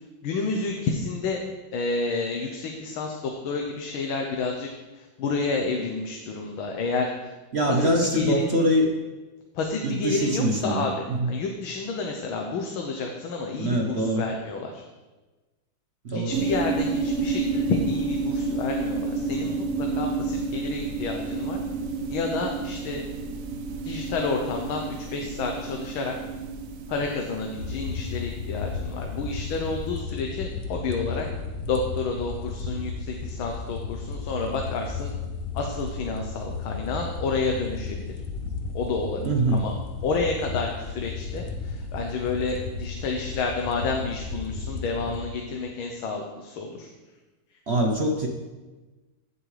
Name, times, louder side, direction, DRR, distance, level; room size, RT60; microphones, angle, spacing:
voice 1, 0.2-1.4 1.7-4.7 4.9-7.3 7.7-8.5 9.5-14.8 16.1-21.6 22.1-23.1 23.8-26.2 26.9-31.3 31.7-35.1 35.5-38.1 38.7-39.7 40.0-46.9, left 4 dB, 90° left, 2 dB, 1.7 m, -30 dB
voice 2, 7.5-8.9 9.8-11.3 13.6-14.2 16.0-16.4 39.2-39.7 47.7-48.3, right 1 dB, 45° right, 1 dB, 0.9 m, -24 dB
sound 1, 16.3-29.7, right 4 dB, 70° right, 0.8 m, -30 dB
sound 2, 27.5-45.2, left 4 dB, 65° left, 1.5 m, -34 dB
15.5 x 7.4 x 3.3 m, 1.2 s
omnidirectional pair, 2.2 m